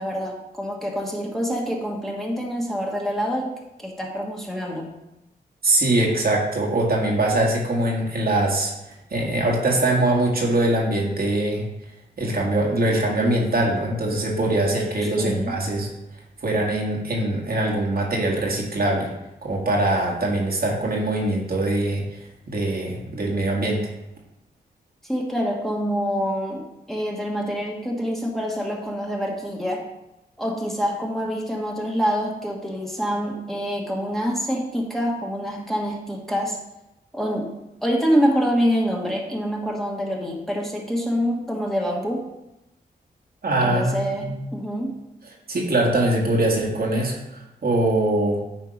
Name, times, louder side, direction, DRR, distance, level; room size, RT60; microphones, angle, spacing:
voice 1, 0.0-3.5 3.8-4.9 15.0-15.5 25.0-29.8 30.4-36.6 37.1-37.5 37.8-42.3 43.6-45.0, equal, ahead, -2 dB, 1.5 m, -26 dB
voice 2, 5.6-11.7 12.2-15.9 16.4-19.1 19.4-22.1 22.5-23.9 43.4-44.4 45.5-47.2 47.6-48.4, right 1 dB, 60° right, -2 dB, 1.8 m, -22 dB
9.1 x 3.5 x 5.2 m, 0.92 s
cardioid pair, 70°, 17 cm